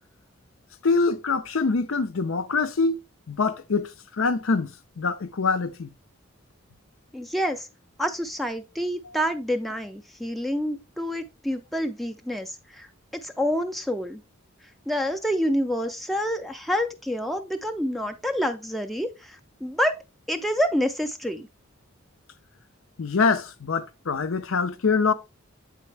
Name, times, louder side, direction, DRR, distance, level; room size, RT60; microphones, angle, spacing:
voice 1, 0.8-3.0 3.3-4.7 5.0-5.9 23.0-25.1, left 4 dB, 80° left, 0.6 m, -24 dB
voice 2, 7.1-7.7 8.0-12.9 13.2-14.2 14.9-20.0 20.3-21.5, equal, ahead, 0.4 m, -27 dB
8.2 x 4.2 x 3.2 m
head